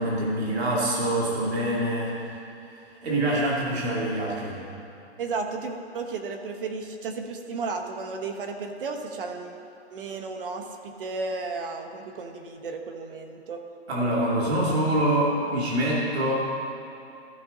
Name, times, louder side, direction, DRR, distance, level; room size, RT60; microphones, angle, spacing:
voice 1, 0.0-2.4 3.0-4.6 13.9-16.3, right 1 dB, 70° right, -5 dB, 2.2 m, -25 dB
voice 2, 5.2-9.6 9.9-13.6, right 4 dB, 55° right, 4 dB, 1.1 m, -33 dB
14.0 x 5.2 x 3.8 m, 2.8 s
hypercardioid pair, 165°, 33 cm